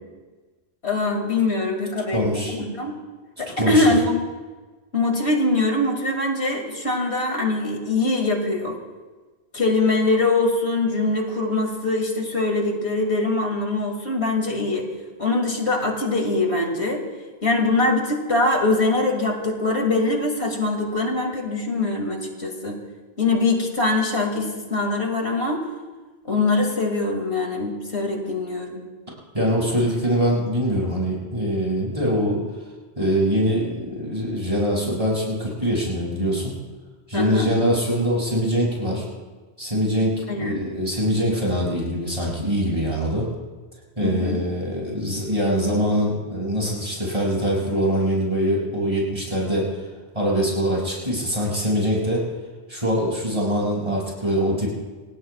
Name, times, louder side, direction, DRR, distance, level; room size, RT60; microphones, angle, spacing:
voice 1, 0.8-3.0 3.4-4.1 4.9-8.8 9.5-14.9 15.2-17.0 17.4-22.8 23.2-25.6 26.2-28.8 37.1-37.6 40.3-40.7 44.0-44.5, left 2 dB, 85° left, 2 dB, 2.7 m, -23 dB
voice 2, 2.1-2.6 3.6-3.8 29.3-32.4 33.0-36.5 37.1-39.0 39.6-40.1 40.4-43.3 44.0-49.7 50.1-52.2 52.7-54.7, equal, 30° right, -4 dB, 6.3 m, -23 dB
27.5 x 18.5 x 2.4 m, 1.3 s
omnidirectional pair, 1.1 m